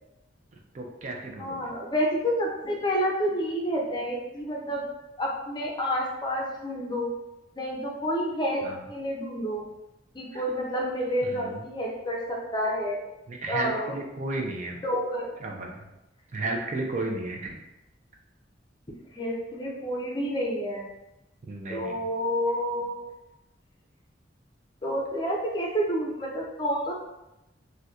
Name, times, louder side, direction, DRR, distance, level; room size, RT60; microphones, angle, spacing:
voice 1, 0.7-1.7 8.6-8.8 10.3-10.4 11.2-11.6 13.3-14.8 15.4-15.9 16.3-17.6 21.4-22.0, right 2 dB, 40° right, 1 dB, 0.4 m, -33 dB
voice 2, 1.4-4.9 5.2-7.1 7.6-9.7 10.1-13.0 13.5-13.9 14.8-15.3 19.1-20.9 21.7-23.1 24.8-26.9, equal, 25° left, -2 dB, 0.5 m, -29 dB
4.0 x 2.2 x 2.4 m, 0.96 s
head